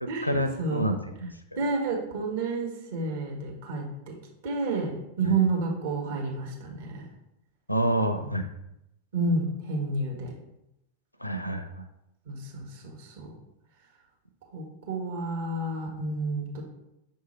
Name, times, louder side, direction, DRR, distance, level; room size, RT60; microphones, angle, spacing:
voice 1, 0.0-0.9 1.2-1.3 5.2-5.3 7.7-8.5 11.2-11.7, equal, 90° left, 8 dB, 0.6 m, -27 dB
voice 2, 1.6-4.1 4.4-7.1 8.2-8.3 9.1-10.3 12.3-13.3 14.5-16.6, right 3 dB, 55° right, -1 dB, 1.7 m, -30 dB
6.5 x 3.7 x 4.3 m, 0.86 s
figure-of-eight pair, 90°, 0 cm